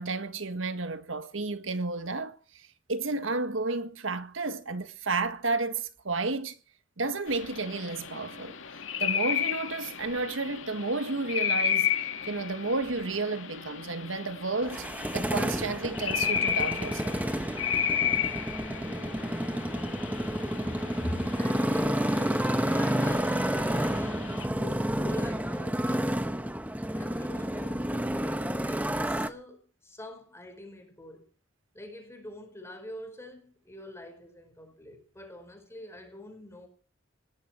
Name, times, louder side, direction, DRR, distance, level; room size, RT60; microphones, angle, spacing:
voice 1, 0.0-6.5 7.0-8.6 9.0-11.9 12.2-14.9 15.1-17.2 20.8-20.9, right 3 dB, 90° right, 1.6 m, -32 dB
sound 1, 7.3-24.5, left 8 dB, 85° left, 2.1 m, -33 dB
Motorcycle, 14.6-29.3, right 1 dB, 10° right, 1.0 m, -30 dB
voice 2, 20.6-26.5 26.9-31.3 31.7-36.7, left 1 dB, 15° left, 5.0 m, -44 dB
19.0 x 15.5 x 4.5 m
head